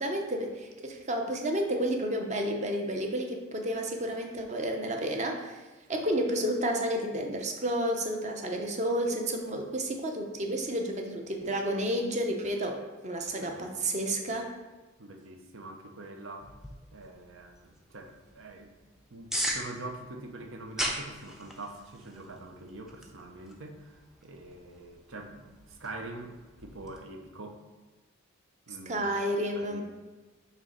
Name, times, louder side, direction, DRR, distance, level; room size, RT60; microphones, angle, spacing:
voice 1, 0.0-5.6 5.9-14.5 28.9-29.8, right 1 dB, 35° right, 2 dB, 0.8 m, -31 dB
voice 2, 11.4-11.9 13.3-14.0 14.3-14.4 15.0-16.5 16.9-18.7 19.1-27.6 28.7-29.0 29.5-29.8, right 2 dB, 70° right, 3 dB, 0.8 m, -45 dB
sound 1, 16.4-27.0, equal, ahead, 0.5 m, -40 dB
6.6 x 3.1 x 5.1 m, 1.2 s
head